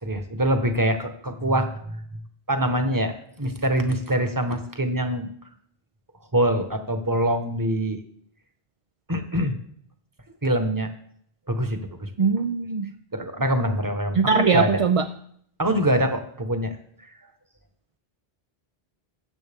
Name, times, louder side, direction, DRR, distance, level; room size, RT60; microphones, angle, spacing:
voice 1, 0.0-2.0 2.5-5.3 6.3-8.0 9.1-9.5 10.4-10.9 11.5-12.1 13.1-14.8 15.6-16.8, right 1 dB, 20° right, 6 dB, 1.2 m, -24 dB
voice 2, 12.2-12.9 14.2-15.0, right 5 dB, 40° right, 8 dB, 0.5 m, -21 dB
21.0 x 7.6 x 3.6 m, 0.65 s
omnidirectional pair, 1.0 m